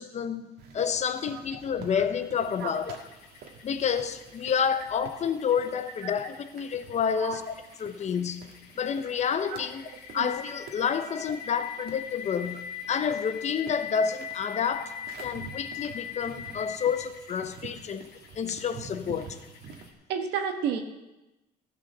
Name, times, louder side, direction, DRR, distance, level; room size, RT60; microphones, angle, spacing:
voice 1, 0.0-3.0 3.6-7.5 7.8-8.5 8.8-9.9 10.1-14.9 15.2-19.4, left 7 dB, 40° left, 0.8 m, -29 dB
sound 1, 0.6-19.9, right 6 dB, 70° right, 1.6 m, -49 dB
sound 2, 2.4-19.9, left 8 dB, 80° left, 1.6 m, -43 dB
voice 2, 20.1-20.8, right 7 dB, 85° right, 1.4 m, -30 dB
14.5 x 5.3 x 6.7 m
cardioid pair, 110°, 17 cm